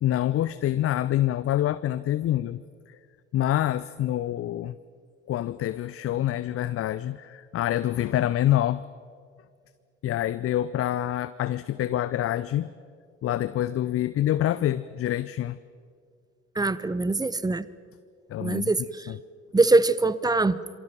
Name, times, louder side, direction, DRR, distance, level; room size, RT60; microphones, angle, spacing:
voice 1, 0.0-2.6 2.9-3.0 3.3-4.8 5.3-8.8 10.0-12.7 13.2-15.6 18.3-18.7 19.1-19.2, left 13 dB, 35° left, 16 dB, 0.6 m, -26 dB
voice 2, 16.6-17.7 18.4-19.1 19.5-20.6, right 3 dB, 10° right, 18 dB, 0.9 m, -23 dB
27.0 x 23.5 x 6.0 m, 2.1 s
figure-of-eight pair, 55°, 38 cm